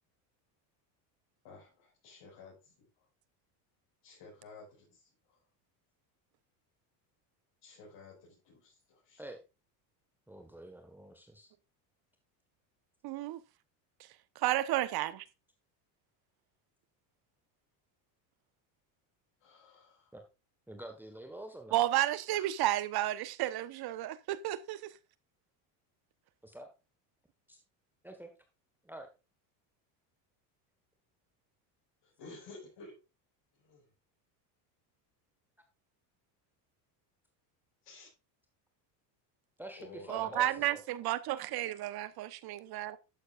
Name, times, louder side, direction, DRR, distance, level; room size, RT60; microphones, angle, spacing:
voice 1, 1.4-2.8 4.0-5.4 7.6-9.2 19.4-20.1 32.0-33.0 33.6-33.9 37.8-38.1 39.8-40.6, left 3 dB, 60° left, 5.7 m, -53 dB
voice 2, 10.3-11.5 20.1-20.2 20.7-21.8 26.4-26.7 27.5-27.6 28.0-28.3 28.8-29.1 39.6-40.8, right 1 dB, 5° right, 1.6 m, -47 dB
voice 3, 13.0-13.4 14.4-15.2 21.7-24.9 40.1-43.0, right 14 dB, 50° right, 1.2 m, -32 dB
12.0 x 8.1 x 2.5 m
supercardioid pair, 100°, 47 cm